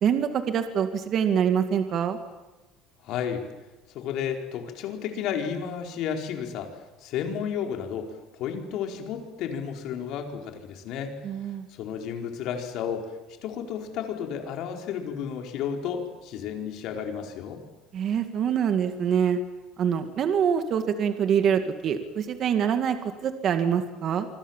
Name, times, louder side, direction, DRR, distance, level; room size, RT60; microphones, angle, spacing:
voice 1, 0.0-2.2 11.2-11.7 17.9-19.4 19.8-24.3, right 8 dB, 40° right, 7 dB, 2.2 m, -25 dB
voice 2, 3.0-3.4 3.9-6.7 7.0-11.1 11.7-13.1 13.4-17.6, left 8 dB, 55° left, 3 dB, 4.5 m, -32 dB
27.0 x 24.5 x 7.4 m, 1.1 s
cardioid pair, 145°, 0 cm